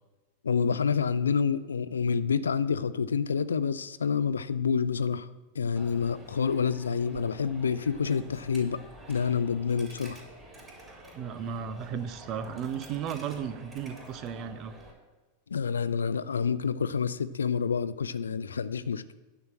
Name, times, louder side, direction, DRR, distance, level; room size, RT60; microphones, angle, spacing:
voice 1, 0.4-5.3 5.6-8.8 9.1-10.2 15.5-19.1, left 6 dB, 70° left, 15 dB, 0.4 m, -28 dB
Coin (dropping), 5.8-14.9, right 1 dB, 20° right, 3.3 m, -49 dB
voice 2, 11.2-14.8, right 7 dB, 35° right, 11 dB, 0.7 m, -35 dB
9.6 x 4.4 x 7.6 m, 1.2 s
figure-of-eight pair, 90°, 0 cm